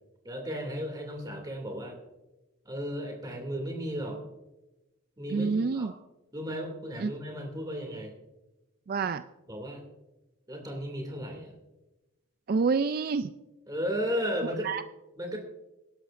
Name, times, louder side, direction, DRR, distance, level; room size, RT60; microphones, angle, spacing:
voice 1, 0.2-2.0 2.6-4.2 5.2-5.9 6.3-8.1 9.5-9.8 10.5-11.5 13.7-14.7 15.2-15.4, equal, 20° right, 2 dB, 2.5 m, -34 dB
voice 2, 5.3-5.9 7.0-7.1 8.9-9.2 12.5-13.3 14.4-14.8, right 4 dB, 45° right, 11 dB, 0.3 m, -28 dB
23.5 x 11.5 x 2.5 m, 1.0 s
head